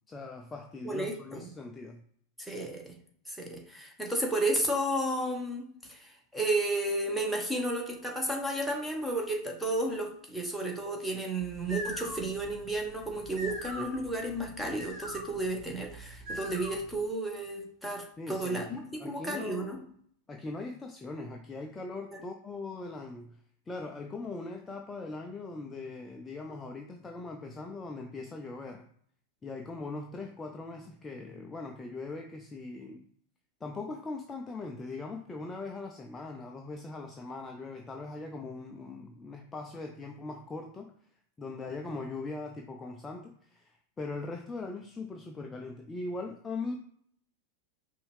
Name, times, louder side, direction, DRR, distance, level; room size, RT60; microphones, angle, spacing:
voice 1, 0.1-2.0 18.2-19.8 20.3-23.4 23.7-28.9 29.4-33.1 33.6-40.9 41.4-46.8, left 3 dB, 15° left, 3 dB, 0.5 m, -40 dB
voice 2, 0.8-1.5 2.4-3.0 3.3-5.6 5.9-19.8 22.1-22.2, right 1 dB, ahead, 0 dB, 1.1 m, -32 dB
sound 1, 11.4-17.0, equal, 30° right, 1.4 m, -43 dB
5.4 x 2.7 x 3.2 m, 0.63 s
figure-of-eight pair, 90°, 0 cm